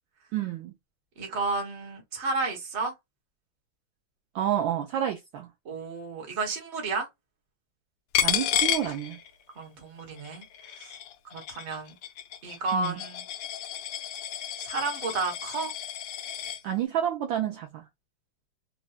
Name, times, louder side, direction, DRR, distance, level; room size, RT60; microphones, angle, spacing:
voice 1, 0.3-0.7 4.3-5.5 8.2-9.2 12.7-13.0 16.6-17.9, right 11 dB, 75° right, 1.2 m, -29 dB
voice 2, 1.2-2.9 5.6-7.1 9.5-11.0 11.2-11.9 12.4-13.2 14.6-15.7, right 3 dB, 40° right, 1.2 m, -32 dB
Coin (dropping), 8.1-9.6 10.0-16.6, left 10 dB, 75° left, 1.2 m, -32 dB
4.1 x 2.2 x 2.3 m
omnidirectional pair, 2.4 m